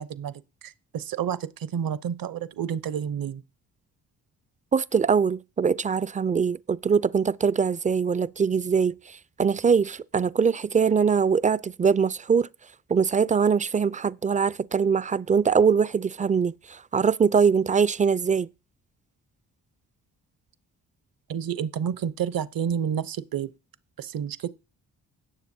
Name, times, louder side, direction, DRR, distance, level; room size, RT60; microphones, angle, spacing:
voice 1, 0.0-3.4 21.3-23.5 24.0-24.5, right 8 dB, 55° right, 0.8 m, -30 dB
voice 2, 4.7-8.9 9.4-12.5 12.9-18.5, right 6 dB, 20° right, 0.4 m, -22 dB
17.0 x 6.9 x 2.7 m
supercardioid pair, 50°, 41 cm